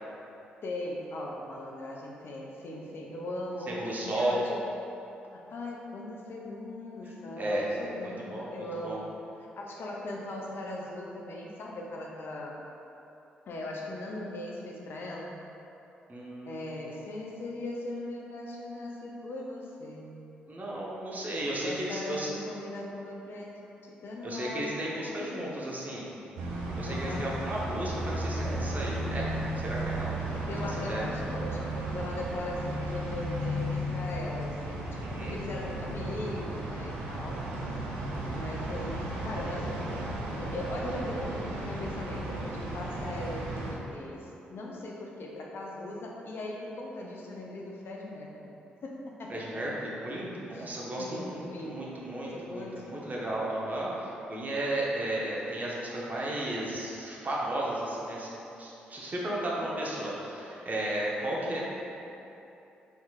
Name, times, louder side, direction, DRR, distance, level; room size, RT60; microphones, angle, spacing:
voice 1, 0.6-3.7 4.0-4.6 5.3-9.1 9.4-12.6 13.5-15.4 16.5-20.2 21.4-23.5 23.8-24.7 25.0-25.6 26.8-27.4 30.3-37.4 38.3-40.1 40.3-48.5 48.8-49.4 50.5-51.9 52.3-53.0 59.6-59.9 61.4-61.6, left 1 dB, 55° left, -2 dB, 0.5 m, -39 dB
voice 2, 3.7-4.4 7.4-7.6 8.0-9.0 16.1-16.6 20.5-22.3 24.2-26.1 26.7-29.3 29.5-31.0 35.0-35.4 40.8-40.9 49.3-58.3 58.6-61.6, right 1 dB, 40° right, -5 dB, 0.8 m, -34 dB
sound 1, 26.4-43.7, right 1 dB, 80° right, 0.4 m, -34 dB
4.3 x 3.1 x 2.3 m, 2.9 s
hypercardioid pair, 40°, 4 cm